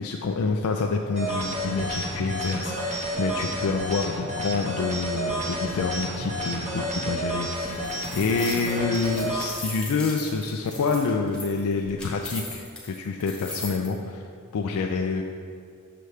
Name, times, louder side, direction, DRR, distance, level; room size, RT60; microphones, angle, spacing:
voice 1, 0.0-14.2 14.5-15.2, left 4 dB, 85° left, 2 dB, 0.4 m, -27 dB
sound 1, 1.1-9.5, right 1 dB, 30° right, 1.1 m, -30 dB
sound 2, 7.6-13.9, left 2 dB, 5° left, 1.1 m, -38 dB
6.7 x 6.3 x 3.2 m, 2.3 s
head